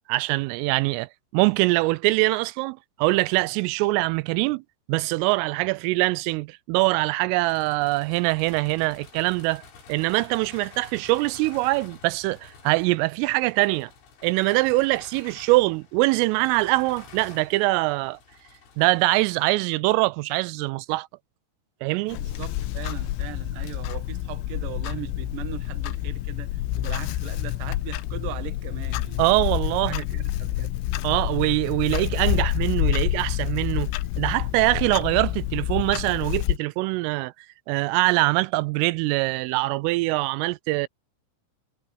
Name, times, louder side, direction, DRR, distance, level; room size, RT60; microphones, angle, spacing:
voice 1, 0.1-4.6 4.9-9.6 9.9-13.9 14.2-18.2 18.8-21.1 21.8-22.2 29.2-30.0 31.0-33.9 34.2-37.3 37.7-40.9, right 22 dB, 85° right, 3.1 m, -23 dB
sound 1, 7.4-19.4, left 5 dB, 70° left, 7.7 m, -49 dB
Clock, 22.1-36.6, left 15 dB, 85° left, 3.2 m, -28 dB
voice 2, 22.2-29.4 29.9-30.7, right 13 dB, 65° right, 2.2 m, -39 dB
omnidirectional pair, 5.8 m